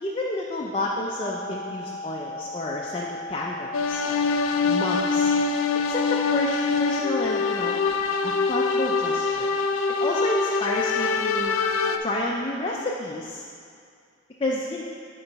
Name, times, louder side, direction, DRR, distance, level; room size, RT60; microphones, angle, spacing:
voice 1, 0.0-4.3 4.6-5.3 5.9-7.8 8.2-9.5 10.0-11.6 12.0-13.4 14.4-14.8, left 1 dB, 25° left, -2 dB, 0.4 m, -30 dB
sound 1, 1.1-11.1, left 2 dB, 90° right, 1.7 m, -37 dB
sound 2, 3.7-12.0, left 4 dB, 90° left, 0.4 m, -24 dB
9.6 x 3.9 x 4.6 m, 2.3 s
head